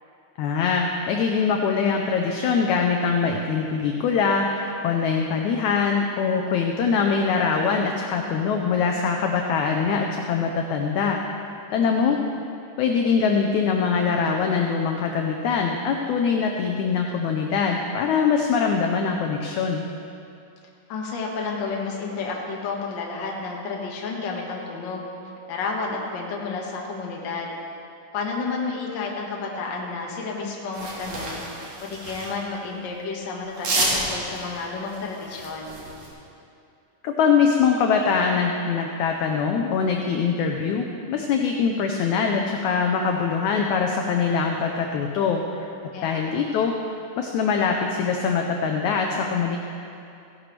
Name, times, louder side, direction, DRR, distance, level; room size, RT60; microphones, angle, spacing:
voice 1, 0.4-11.2 11.7-12.2 12.8-19.8 37.0-45.7 46.0-46.7 47.2-49.6, left 5 dB, 80° left, 2 dB, 1.7 m, -23 dB
voice 2, 11.9-12.3 20.9-25.0 25.5-27.5 28.1-31.4 31.8-35.8 45.9-46.4, left 4 dB, 55° left, -1 dB, 1.3 m, -31 dB
sound 1, 30.7-32.4 33.5-36.1, right 2 dB, 55° right, 2.8 m, -30 dB
16.0 x 11.0 x 3.3 m, 2.6 s
omnidirectional pair, 4.0 m